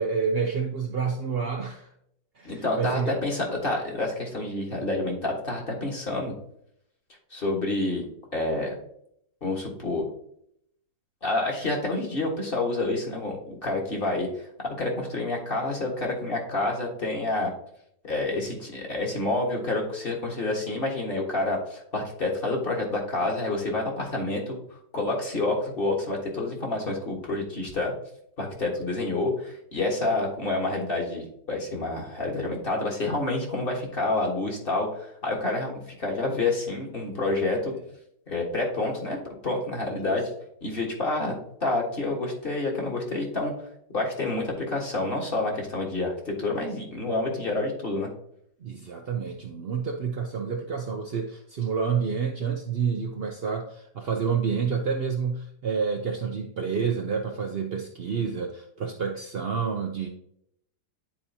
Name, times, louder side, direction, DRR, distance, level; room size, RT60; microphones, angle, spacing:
voice 1, 0.0-1.9 2.4-3.1 39.9-40.2 48.6-60.1, right 6 dB, 90° right, 3 dB, 0.5 m, -29 dB
voice 2, 2.4-6.3 7.3-8.0 8.3-8.8 9.4-10.1 11.2-14.3 14.6-17.5 18.0-24.6 24.9-27.9 28.4-37.7 38.3-39.2 39.4-40.3 40.6-43.5 43.9-48.1, left 2 dB, 35° left, -1 dB, 1.5 m, -28 dB
10.0 x 4.3 x 2.7 m, 0.72 s
omnidirectional pair, 1.9 m